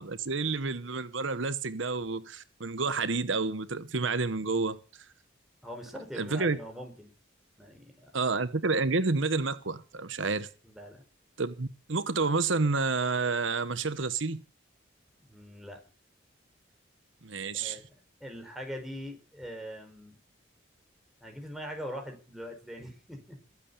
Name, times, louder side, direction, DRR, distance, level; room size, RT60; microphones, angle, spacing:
voice 1, 0.0-4.8 6.2-6.6 8.1-10.5 11.4-14.4 17.2-17.8, right 4 dB, 75° right, 1.1 m, -29 dB
voice 2, 5.6-7.1 7.6-8.1 10.6-11.0 15.2-15.8 17.5-17.8 18.2-20.2 21.2-23.4, equal, ahead, 4.7 m, -42 dB
22.0 x 8.5 x 6.9 m
head